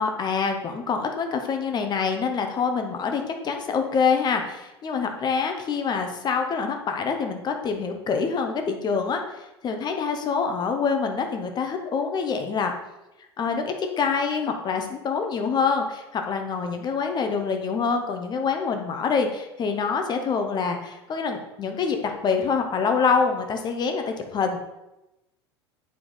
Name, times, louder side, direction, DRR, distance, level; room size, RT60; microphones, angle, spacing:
voice 1, 0.0-9.4 9.6-12.7 13.4-22.0 22.2-24.6, left 5 dB, 30° left, 5 dB, 0.9 m, -26 dB
8.3 x 4.6 x 3.9 m, 0.97 s
figure-of-eight pair, 70°, 14 cm